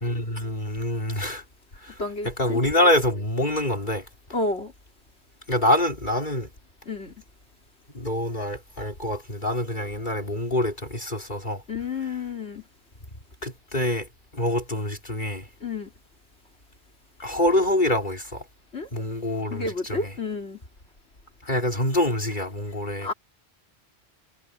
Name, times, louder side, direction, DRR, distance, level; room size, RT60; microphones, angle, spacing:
voice 1, 0.0-1.4 1.8-4.1 5.5-6.5 7.9-11.6 13.4-15.5 17.2-18.4 18.9-20.1 21.4-23.1, left 1 dB, 45° left, 4.2 m, -26 dB
voice 2, 2.0-2.6 4.3-4.7 6.9-7.1 11.7-12.6 15.6-15.9 18.7-18.9 19.5-20.6 23.0-23.1, left 3 dB, 85° left, 3.9 m, -30 dB
omnidirectional pair, 1.1 m